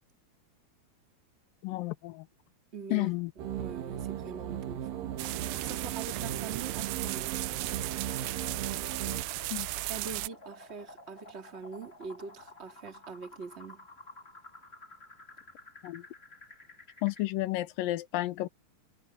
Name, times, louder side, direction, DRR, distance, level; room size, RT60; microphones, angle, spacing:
voice 1, 1.6-2.3 2.9-3.3 9.1-9.2 9.5-9.7 15.8-16.0 17.0-18.5, left 18 dB, 75° left, 2.3 m, -31 dB
voice 2, 2.7-5.2 5.6-7.4 9.9-13.9, right 5 dB, 20° right, 2.1 m, -43 dB
sound 1, 3.4-9.2, right 10 dB, 70° right, 3.0 m, -37 dB
sound 2, 5.2-10.3, right 20 dB, 90° right, 2.6 m, -36 dB
sound 3, 5.3-17.3, left 2 dB, 15° left, 2.7 m, -52 dB
omnidirectional pair, 4.5 m